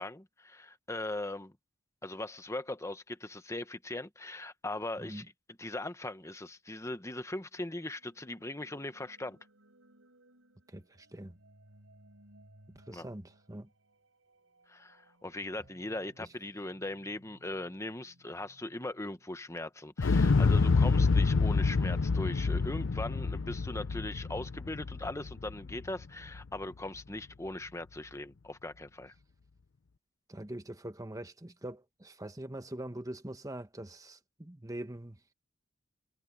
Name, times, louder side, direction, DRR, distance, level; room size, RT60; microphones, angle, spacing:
voice 1, 0.0-1.5 2.0-5.2 5.6-9.4 12.9-13.1 14.7-29.1, left 2 dB, 15° left, 1.1 m, -40 dB
sound 1, 7.8-19.7, right 1 dB, 75° right, 6.3 m, -63 dB
voice 2, 10.7-11.4 12.7-13.7 16.2-16.3 30.3-35.2, right 1 dB, 15° right, 1.2 m, -43 dB
Explosion, 20.0-26.0 26.3-26.4, left 4 dB, 65° left, 0.6 m, -27 dB
head